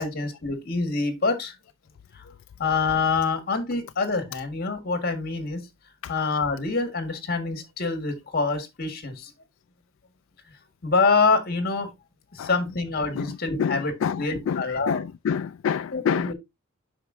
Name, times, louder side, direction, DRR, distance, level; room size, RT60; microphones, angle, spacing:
voice 1, 0.0-1.5 2.1-2.3 2.6-5.6 6.1-9.3 10.8-11.9 12.3-13.9 14.2-15.0 15.9-16.3, left 4 dB, 50° left, 1.6 m, -26 dB
voice 2, 13.1-16.3, left 7 dB, 70° left, 0.3 m, -28 dB
8.0 x 5.7 x 2.6 m
head